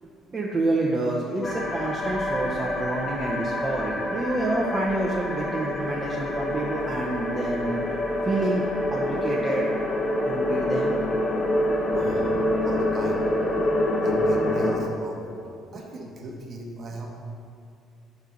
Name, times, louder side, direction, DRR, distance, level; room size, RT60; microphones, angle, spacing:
voice 1, 0.0-7.8 8.2-9.7 10.3-11.0 11.9-12.4, right 2 dB, 30° right, -3 dB, 0.8 m, -28 dB
sound 1, 1.4-14.8, left 1 dB, 45° left, 0.9 m, -26 dB
voice 2, 11.9-12.3 12.6-13.3 14.0-15.3 15.7-17.1, right 2 dB, 45° right, 0 dB, 1.2 m, -38 dB
5.3 x 4.6 x 5.7 m, 2.4 s
hypercardioid pair, 55°, 0 cm